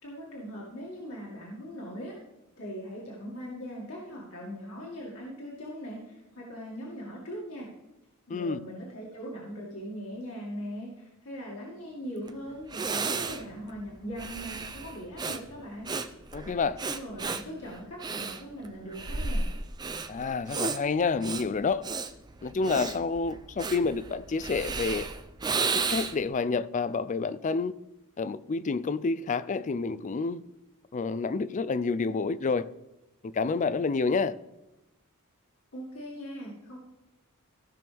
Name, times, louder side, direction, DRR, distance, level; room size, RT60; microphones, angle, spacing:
voice 1, 0.0-2.2 2.6-7.7 8.3-15.9 16.8-19.5 35.7-36.8, equal, 65° left, 2.2 m, -40 dB
voice 2, 8.3-8.6 16.3-16.8 20.1-21.8 22.4-25.1 25.6-27.7 28.2-30.4 30.9-32.7 33.2-34.3, left 4 dB, 35° left, 0.4 m, -29 dB
Breathing, 12.3-12.4 12.7-26.3, right 4 dB, 20° right, 0.5 m, -33 dB
15.5 x 6.2 x 3.5 m
head